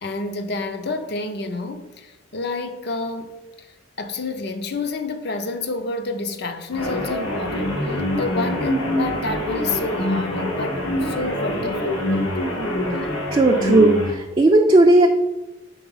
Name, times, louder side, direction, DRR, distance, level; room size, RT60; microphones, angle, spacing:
voice 1, 0.0-3.7 4.0-12.4 13.0-13.1, left 3 dB, 50° left, 0.5 m, -29 dB
sound 1, 6.7-14.1, left 1 dB, 85° left, 1.4 m, -25 dB
voice 2, 13.3-15.1, right 2 dB, 25° right, 0.3 m, -15 dB
4.7 x 4.0 x 5.4 m
head